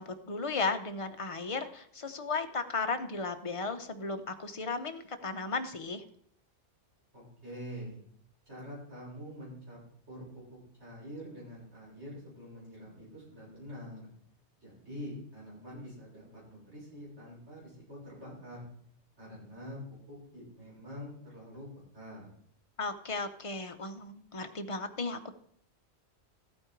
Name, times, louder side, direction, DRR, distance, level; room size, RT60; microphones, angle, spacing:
voice 1, 0.0-6.0 22.8-25.3, left 3 dB, 30° left, 7 dB, 0.8 m, -35 dB
voice 2, 7.1-8.0 8.5-9.8 10.1-14.1 14.6-18.7 19.2-19.8 20.1-21.7 21.9-22.3, equal, 75° right, -6 dB, 7.0 m, -46 dB
14.0 x 8.7 x 4.6 m, 0.64 s
omnidirectional pair, 1.2 m